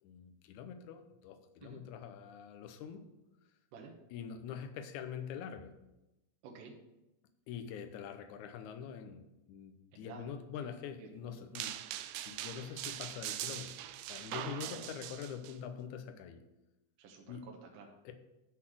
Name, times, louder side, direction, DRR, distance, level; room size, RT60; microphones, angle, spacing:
voice 1, 0.0-3.0 4.1-5.7 7.5-11.8 12.3-16.4 17.3-17.5 18.1-18.2, left 7 dB, 75° left, 7 dB, 1.9 m, -45 dB
voice 2, 6.4-6.8 9.9-10.3 10.6-10.7 11.0-11.5 14.6-14.8 17.0-18.0, right 5 dB, 70° right, 1 dB, 2.5 m, -52 dB
sound 1, 11.6-15.5, right 13 dB, 85° right, 1.9 m, -42 dB
9.9 x 4.1 x 7.6 m, 0.95 s
omnidirectional pair, 4.2 m